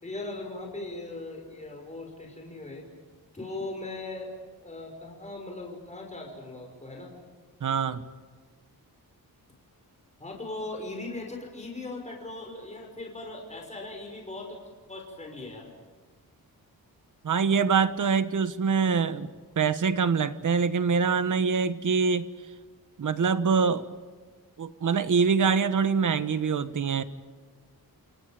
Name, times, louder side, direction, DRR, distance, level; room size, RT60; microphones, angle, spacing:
voice 1, 0.0-2.9 3.3-4.3 4.6-7.1 10.2-14.6 14.9-15.7, left 2 dB, 20° left, 1 dB, 5.7 m, -39 dB
voice 2, 7.6-8.0 17.2-19.3 19.6-22.3 23.0-23.9 24.6-27.0, right 5 dB, 55° right, 12 dB, 1.3 m, -24 dB
29.0 x 28.5 x 5.1 m, 1.5 s
wide cardioid pair, 165°, 37 cm